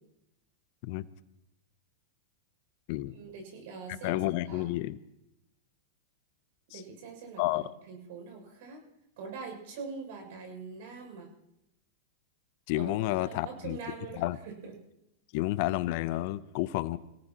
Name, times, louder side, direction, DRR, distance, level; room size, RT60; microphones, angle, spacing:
voice 1, 3.1-4.2 4.5-4.8 6.7-8.8 9.2-11.3 12.8-12.9 13.2-14.7, right 5 dB, 65° right, 2 dB, 6.5 m, -43 dB
voice 2, 3.9-5.0 6.7-6.8 7.4-7.7 12.7-13.8 14.2-14.4 15.3-17.0, left 17 dB, 55° left, 16 dB, 0.7 m, -30 dB
26.5 x 17.5 x 3.0 m, 0.86 s
hypercardioid pair, 105°, 0 cm